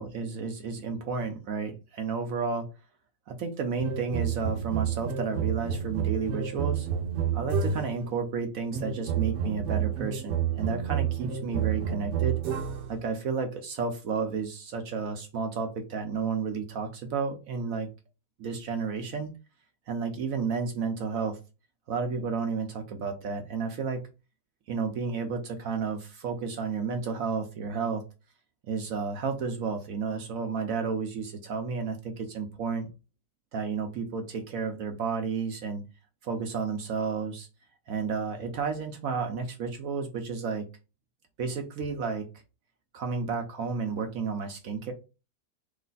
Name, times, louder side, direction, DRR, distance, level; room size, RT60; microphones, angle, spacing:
voice 1, 0.0-2.7 3.3-6.9 7.3-12.4 12.9-17.9 18.4-19.3 19.9-21.4 21.9-24.0 24.7-28.0 28.6-32.9 33.5-35.8 36.2-37.5 37.9-40.7 41.4-42.3 42.9-44.9, right 5 dB, 60° right, 5 dB, 1.0 m, -32 dB
sound 1, 3.8-8.1 8.7-13.0, right 8 dB, 80° right, 1.5 m, -29 dB
3.2 x 3.2 x 3.9 m, 0.29 s
omnidirectional pair, 1.9 m